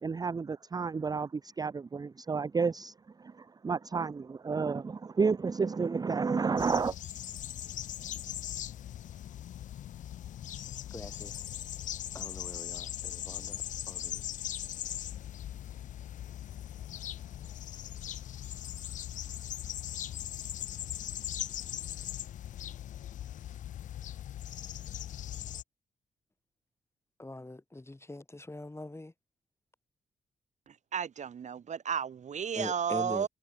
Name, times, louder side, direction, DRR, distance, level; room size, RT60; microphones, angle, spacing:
voice 1, 0.0-6.9, right 5 dB, 25° right, 0.5 m, -31 dB
sound 1, 6.6-25.6, left 11 dB, 60° left, 0.4 m, -40 dB
voice 2, 10.9-11.4 12.1-14.2 27.2-29.1 32.5-33.3, left 2 dB, 15° left, 2.5 m, -43 dB
voice 3, 30.7-33.3, right 7 dB, 55° right, 0.9 m, -33 dB
hypercardioid pair, 40°, 15 cm